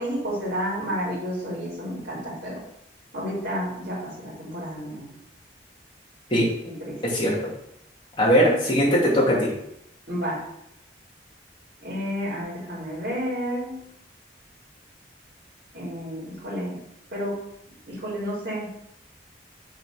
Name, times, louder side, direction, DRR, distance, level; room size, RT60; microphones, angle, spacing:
voice 1, 0.0-2.6 3.1-5.1 6.6-7.0 10.1-10.4 11.8-13.7 15.7-16.8 17.1-17.4 17.8-18.8, equal, 60° right, -10 dB, 3.0 m, -31 dB
voice 2, 7.0-7.3 8.2-9.5, equal, 25° left, -5 dB, 2.3 m, -20 dB
6.0 x 4.1 x 5.9 m, 0.79 s
head